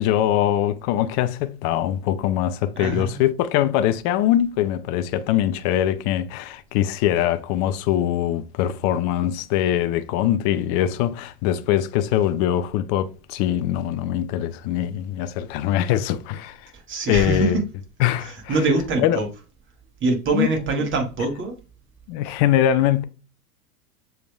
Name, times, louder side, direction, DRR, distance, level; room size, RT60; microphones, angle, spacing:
voice 1, 0.0-16.7 17.1-17.6 18.0-18.6 19.0-19.2 20.3-20.5 20.8-20.9 22.1-23.0, left 11 dB, 40° left, 0.5 m, -22 dB
voice 2, 2.7-3.2 16.7-17.6 18.2-19.3 20.0-21.6, right 3 dB, 25° right, 1.5 m, -24 dB
6.7 x 3.5 x 2.3 m
hypercardioid pair, 95°, 45 cm